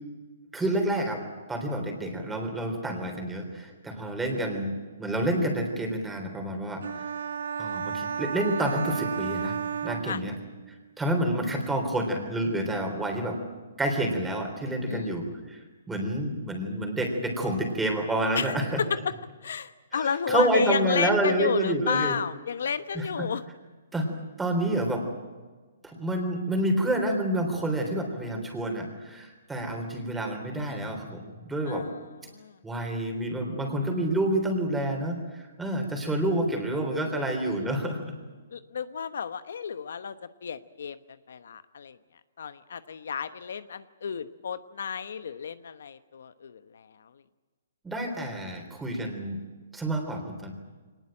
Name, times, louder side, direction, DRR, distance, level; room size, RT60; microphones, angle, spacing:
voice 1, 0.5-1.2 1.5-4.7 5.0-6.8 7.6-9.6 9.8-10.3 11.0-13.4 13.8-15.6 15.9-18.8 19.9-22.2 22.9-23.1 23.9-24.1 24.4-25.1 25.8-31.8 32.6-38.1 47.8-49.4 49.7-50.5, right 1 dB, 5° right, 3 dB, 3.7 m, -28 dB
sound 1, 6.8-10.7, right 7 dB, 75° right, 1.3 m, -33 dB
voice 2, 19.4-23.4 31.7-32.0 32.3-32.5 38.5-40.1 40.4-41.0 41.3-42.0 42.4-47.1, left 7 dB, 70° left, 12 dB, 1.1 m, -32 dB
23.5 x 19.5 x 8.9 m, 1.4 s
hypercardioid pair, 165°, 0 cm